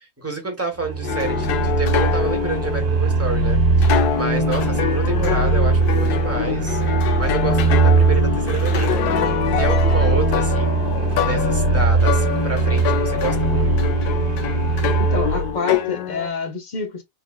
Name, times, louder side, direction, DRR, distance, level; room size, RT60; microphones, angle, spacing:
voice 1, 0.2-6.8 7.2-9.0 9.6-10.9 11.2-13.9, right 3 dB, 10° right, 0.9 m, -29 dB
sound 1, 0.8-15.6, right 3 dB, 75° right, 1.5 m, -20 dB
sound 2, 1.0-16.3, left 9 dB, 85° left, 1.1 m, -25 dB
voice 2, 15.0-17.0, left 4 dB, 40° left, 0.7 m, -27 dB
3.7 x 3.2 x 2.2 m
omnidirectional pair, 1.6 m